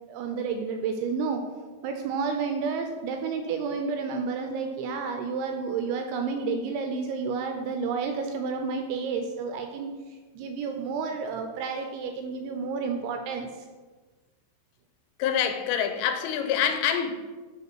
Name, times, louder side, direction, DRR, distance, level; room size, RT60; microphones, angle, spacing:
voice 1, 0.1-1.4 1.8-9.9 10.3-13.7, right 5 dB, 85° right, 5 dB, 2.7 m, -30 dB
voice 2, 15.2-17.1, left 8 dB, 90° left, 6 dB, 3.3 m, -26 dB
8.3 x 3.6 x 6.0 m, 1.3 s
omnidirectional pair, 5.7 m